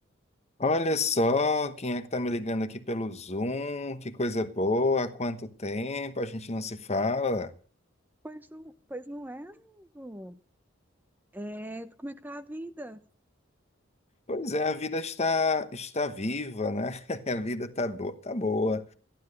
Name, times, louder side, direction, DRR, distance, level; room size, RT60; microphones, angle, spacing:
voice 1, 0.6-7.5 14.3-18.8, left 2 dB, 35° left, 1.1 m, -29 dB
voice 2, 8.2-10.4 11.3-13.0, right 1 dB, 10° right, 0.7 m, -41 dB
14.5 x 12.0 x 6.6 m
head